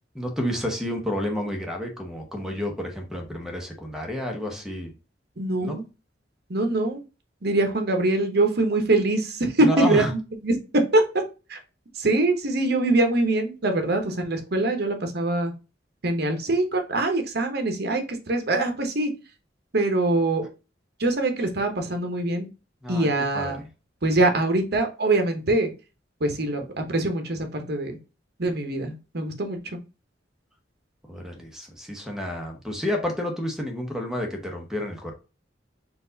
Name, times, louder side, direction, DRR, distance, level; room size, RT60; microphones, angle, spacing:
voice 1, 0.1-4.9 5.6-5.8 9.6-10.1 22.8-23.5 31.1-35.1, left 1 dB, 5° right, 2 dB, 0.9 m, -30 dB
voice 2, 5.4-5.8 6.5-7.0 7.4-11.0 11.5-11.6 11.9-15.5 16.0-18.0 18.3-19.1 19.7-20.4 21.0-22.5 22.9-23.6 24.0-25.7 26.2-28.0 28.4-29.6, right 2 dB, 60° right, 5 dB, 1.0 m, -23 dB
4.5 x 2.5 x 3.9 m, 0.31 s
head